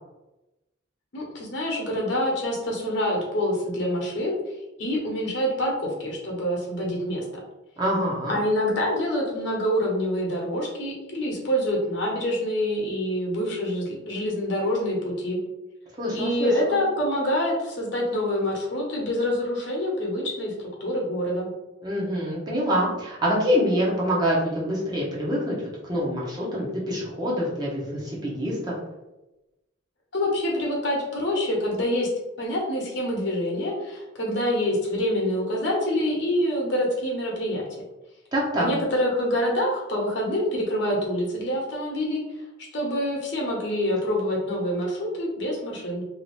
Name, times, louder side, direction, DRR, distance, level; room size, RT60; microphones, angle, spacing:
voice 1, 1.1-4.4 4.8-7.2 8.3-15.4 16.1-21.5 30.1-32.1 32.4-37.8 38.6-42.2 42.7-46.0, left 1 dB, 55° left, -2 dB, 0.9 m, -26 dB
voice 2, 7.8-8.4 16.0-16.8 21.8-25.6 25.8-28.7 38.3-38.7, equal, 20° right, -5 dB, 0.7 m, -25 dB
2.7 x 2.5 x 3.0 m, 1.0 s
head